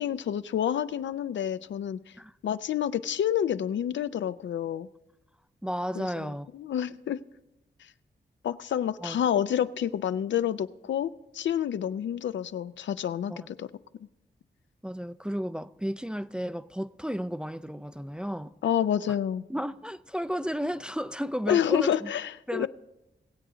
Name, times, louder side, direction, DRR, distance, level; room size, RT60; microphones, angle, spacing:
voice 1, 0.0-2.0 2.4-4.9 6.0-6.1 6.5-7.2 8.4-13.7 18.6-19.4 21.5-22.7, left 9 dB, 85° left, 0.4 m, -28 dB
voice 2, 5.6-6.5 9.0-9.2 13.3-13.5 14.8-18.5 19.5-22.1 22.5-22.7, equal, 5° right, 0.3 m, -33 dB
21.5 x 7.9 x 3.8 m
wide cardioid pair, 95°, 19 cm